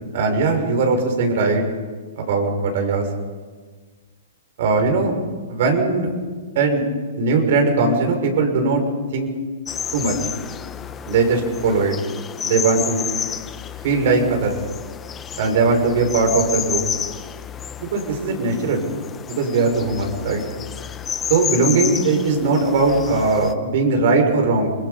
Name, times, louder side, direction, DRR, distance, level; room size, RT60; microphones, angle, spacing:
voice 1, 0.1-1.6 2.2-3.1 4.6-5.1 5.5-6.1 6.5-6.8 7.1-8.8 9.1-9.3 9.9-10.1 11.1-11.9 12.4-13.1 13.8-14.6 15.4-16.8 17.8-18.9 19.3-20.4 21.3-24.8, right 3 dB, 55° right, 3 dB, 6.2 m, -19 dB
sound 1, 9.7-23.5, left 8 dB, 15° left, 0.9 m, -31 dB
29.5 x 22.0 x 5.4 m, 1.4 s
hypercardioid pair, 150°, 0 cm